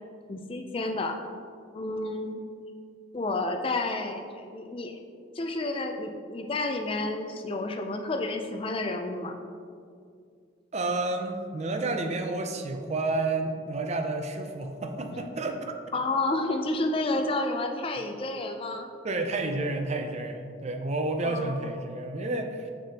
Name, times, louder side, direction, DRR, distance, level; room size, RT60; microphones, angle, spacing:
voice 1, 0.3-1.2 1.7-2.4 3.1-5.0 5.3-9.3 15.1-15.3 15.9-18.9 21.2-21.7, left 2 dB, 30° left, 5 dB, 0.4 m, -30 dB
voice 2, 10.7-15.8 19.0-22.7, right 2 dB, 35° right, 5 dB, 0.4 m, -30 dB
6.7 x 6.3 x 2.8 m, 2.3 s
head